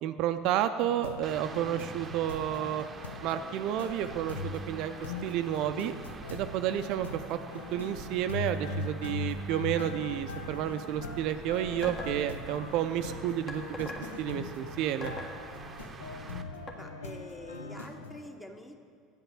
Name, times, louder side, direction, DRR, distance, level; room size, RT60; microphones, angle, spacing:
voice 1, 0.0-2.9 3.2-5.9 6.3-7.4 7.7-13.9 14.2-15.1, right 11 dB, 60° right, 9 dB, 0.4 m, -31 dB
sound 1, 0.8-18.2, left 2 dB, 80° left, 0.6 m, -41 dB
sound 2, 1.2-16.4, right 5 dB, 30° right, 0.7 m, -47 dB
sound 3, 11.8-12.2 13.5-14.1 15.0-15.4 16.7-16.8, left 2 dB, 35° left, 1.5 m, -39 dB
voice 2, 15.8-16.2 16.8-18.7, left 1 dB, 10° left, 4 dB, 1.1 m, -47 dB
9.0 x 5.8 x 7.1 m, 2.5 s
figure-of-eight pair, 65°, 0 cm